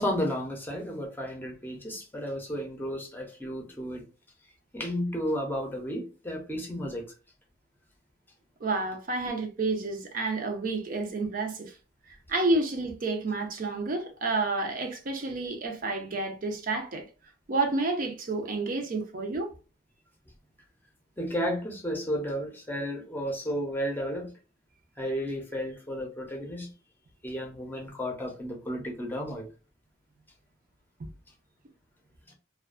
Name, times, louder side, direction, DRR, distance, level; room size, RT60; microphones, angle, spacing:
voice 1, 0.0-4.0 4.7-7.1 21.2-24.3 25.0-26.7 27.2-29.5, equal, 10° left, 0.6 m, -33 dB
voice 2, 8.6-11.7 12.1-17.0 17.5-19.5, right 3 dB, 50° right, 0.5 m, -30 dB
2.5 x 2.2 x 2.4 m
head